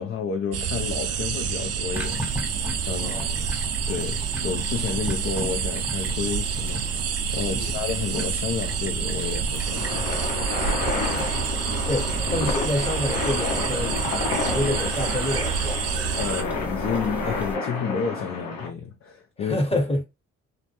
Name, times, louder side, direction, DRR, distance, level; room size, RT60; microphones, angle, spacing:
voice 1, 0.0-2.2 2.8-3.2 3.9-10.1 16.1-19.8, left 6 dB, 40° left, 0.5 m, -31 dB
sound 1, 0.5-16.4, right 7 dB, 50° right, 0.4 m, -28 dB
sound 2, 1.9-17.6, equal, 5° right, 0.6 m, -35 dB
voice 2, 3.0-3.4 7.5-7.7 11.0-11.5 11.9-14.1 14.5-15.9 19.4-20.0, left 1 dB, 20° left, 1.0 m, -28 dB
sound 3, 9.5-18.7, left 3 dB, 90° left, 0.8 m, -30 dB
2.2 x 2.1 x 2.8 m
supercardioid pair, 55°, 34 cm